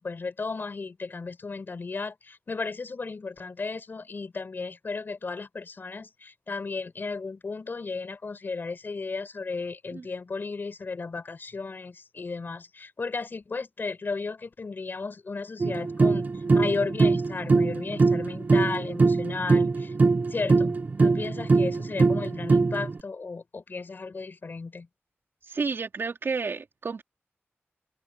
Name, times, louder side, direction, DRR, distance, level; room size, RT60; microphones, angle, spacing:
voice 1, 0.0-16.3 16.5-19.9 20.3-24.9, left 4 dB, 50° left, 5.0 m, -34 dB
sound 1, 15.6-23.0, right 3 dB, 40° right, 0.8 m, -22 dB
voice 2, 25.4-27.0, right 4 dB, 60° right, 4.0 m, -31 dB
open air
wide cardioid pair, 110°, 4 cm